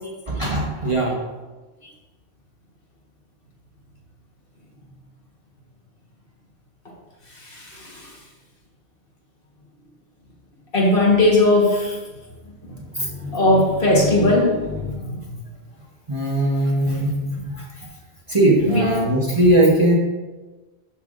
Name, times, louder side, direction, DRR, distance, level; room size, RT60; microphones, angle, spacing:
voice 1, 0.3-1.2 12.9-13.1 16.1-17.7 18.3-20.0, right 1 dB, 30° right, -3 dB, 1.1 m, -19 dB
voice 2, 7.5-8.0 10.7-12.0 13.0-15.2 18.7-18.8, left 1 dB, 50° left, -2 dB, 1.5 m, -18 dB
11.5 x 5.6 x 2.5 m, 1.2 s
omnidirectional pair, 1.2 m